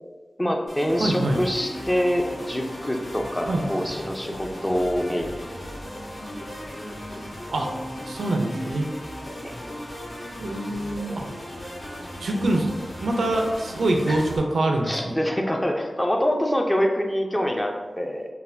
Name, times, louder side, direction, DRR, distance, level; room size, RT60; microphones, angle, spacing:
voice 1, 0.4-5.3 9.4-9.6 14.1-14.3 14.8-18.3, equal, 15° left, 2 dB, 0.4 m, -25 dB
sound 1, 0.7-14.4, equal, 60° left, 1.5 m, -36 dB
voice 2, 1.0-1.4 3.5-3.7 7.5-7.7 8.1-8.9 10.4-11.2 12.2-12.7 13.0-15.2, right 1 dB, 85° right, 2 dB, 0.4 m, -24 dB
4.0 x 2.2 x 2.6 m, 1.3 s
wide cardioid pair, 60°, 0 cm